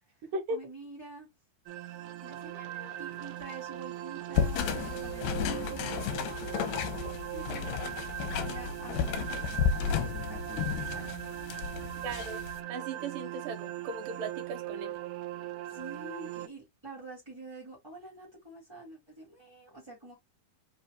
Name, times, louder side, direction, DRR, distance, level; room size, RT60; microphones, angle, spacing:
voice 1, 0.5-1.3 2.2-11.1 15.6-20.1, right 2 dB, 10° right, 1.7 m, -47 dB
sound 1, 1.7-16.5, right 14 dB, 90° right, 1.6 m, -40 dB
sound 2, 4.3-12.6, left 7 dB, 75° left, 2.3 m, -33 dB
voice 2, 12.0-12.4 12.7-15.0, right 3 dB, 70° right, 2.8 m, -37 dB
5.6 x 4.3 x 2.2 m
omnidirectional pair, 4.2 m